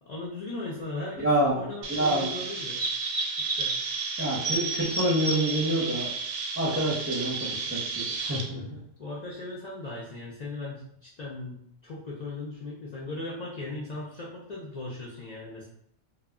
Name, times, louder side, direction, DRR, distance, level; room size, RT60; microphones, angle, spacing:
voice 1, 0.0-2.8 3.4-3.7 9.0-15.7, left 2 dB, 70° left, -5 dB, 0.4 m, -38 dB
voice 2, 1.2-1.6 1.9-2.3 4.2-6.1 6.6-8.8, right 1 dB, 15° right, -5 dB, 0.5 m, -27 dB
Chirp tweet, 1.8-8.4, right 4 dB, 65° right, 0.6 m, -31 dB
2.2 x 2.1 x 3.4 m, 0.69 s
omnidirectional pair, 1.3 m